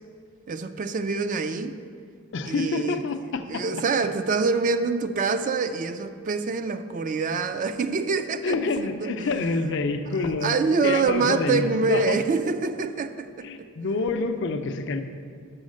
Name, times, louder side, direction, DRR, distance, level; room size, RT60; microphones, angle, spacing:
voice 1, 0.5-1.7 2.5-3.1 3.5-9.6 10.4-13.7, right 4 dB, 40° right, 9 dB, 0.3 m, -26 dB
voice 2, 2.3-3.6 8.4-12.2 13.4-15.0, left 3 dB, 60° left, 8 dB, 0.5 m, -27 dB
6.2 x 5.6 x 6.3 m, 2.2 s
head